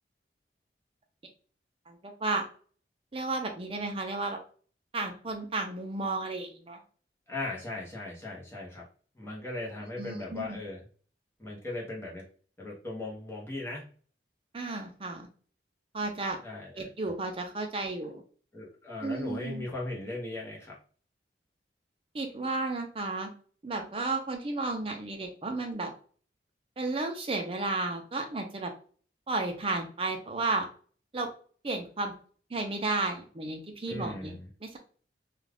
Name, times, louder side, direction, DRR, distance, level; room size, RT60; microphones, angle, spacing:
voice 1, 1.9-2.4 3.1-4.4 4.9-6.8 10.0-10.6 14.5-15.3 15.9-16.4 16.8-18.2 19.0-19.7 22.1-23.3 23.6-25.9 26.8-28.7 29.3-30.6 31.1-31.3 31.6-32.1 32.5-34.3 34.6-34.8, right 3 dB, 30° right, 3 dB, 0.5 m, -33 dB
voice 2, 7.3-8.8 9.2-10.8 11.4-12.2 12.6-13.8 16.4-16.9 18.5-20.7 33.9-34.5, left 2 dB, 15° left, -4 dB, 0.9 m, -38 dB
2.4 x 2.3 x 3.4 m, 0.42 s
head